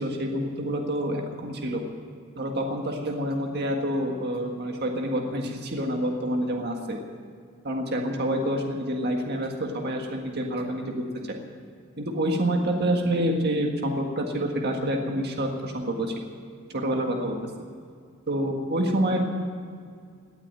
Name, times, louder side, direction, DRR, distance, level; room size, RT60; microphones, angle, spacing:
voice 1, 0.0-1.8 2.3-7.0 7.6-10.9 11.3-11.4 12.0-16.1 16.7-17.5 18.3-19.2, right 1 dB, 50° right, 2 dB, 1.7 m, -27 dB
18.0 x 9.0 x 9.0 m, 2.2 s
head